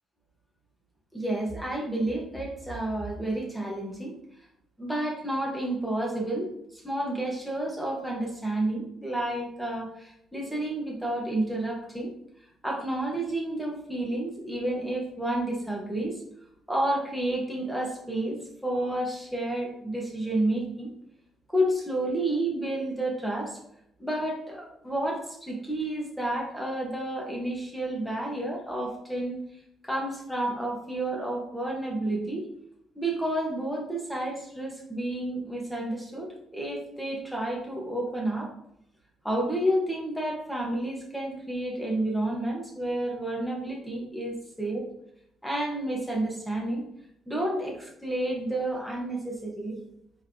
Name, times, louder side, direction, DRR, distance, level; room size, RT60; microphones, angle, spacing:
voice 1, 1.1-4.1 4.8-12.1 12.6-16.2 16.7-20.9 21.5-23.6 24.0-29.4 29.8-32.5 32.9-38.5 39.2-44.8 45.4-46.8 47.3-49.8, right 1 dB, ahead, -2 dB, 1.3 m, -30 dB
4.7 x 3.4 x 2.9 m, 0.75 s
cardioid pair, 90°, 0 cm